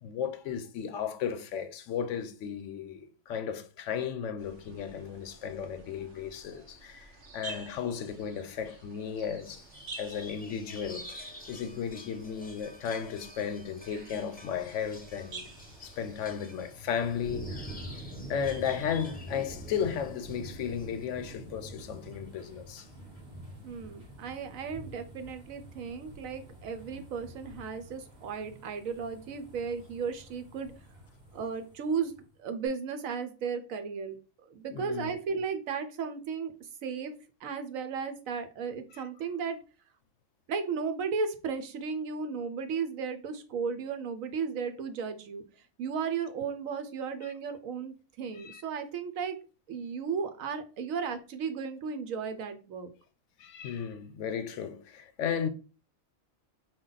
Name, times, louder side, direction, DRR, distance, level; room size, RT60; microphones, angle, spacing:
voice 1, 0.0-9.7 10.0-15.5 15.8-17.8 18.3-23.0 34.7-35.1 38.9-39.1 47.2-47.3 48.3-48.6 53.4-55.5, left 7 dB, 75° left, 0.9 m, -35 dB
sound 1, 4.4-16.4, right 3 dB, 60° right, 1.1 m, -50 dB
sound 2, 9.4-21.1, left 1 dB, 10° left, 0.5 m, -50 dB
sound 3, 14.1-32.2 32.7-32.8, right 1 dB, 35° right, 1.8 m, -47 dB
voice 2, 23.6-30.7 31.3-32.1 32.4-34.2 34.4-36.5 36.8-37.1 37.4-39.6 40.5-45.4 45.8-49.4 49.7-52.9, right 6 dB, 90° right, 1.1 m, -35 dB
5.2 x 2.3 x 3.8 m
omnidirectional pair, 1.4 m